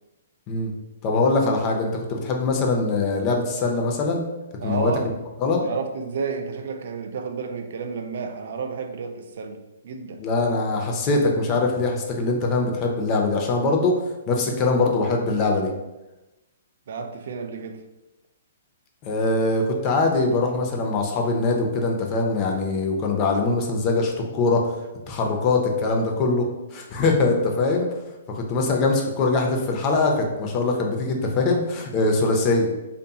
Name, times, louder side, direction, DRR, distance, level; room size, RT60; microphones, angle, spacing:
voice 1, 1.0-4.2 4.6-4.9 5.4-5.7 10.2-14.0 14.3-15.7 19.0-24.6 25.1-27.9 28.3-32.7, left 3 dB, 35° left, 1 dB, 0.4 m, -22 dB
voice 2, 4.6-5.1 5.6-10.2 16.9-17.8, right 5 dB, 65° right, 6 dB, 0.3 m, -31 dB
2.6 x 2.5 x 2.3 m, 1.0 s
hypercardioid pair, 135°, 0 cm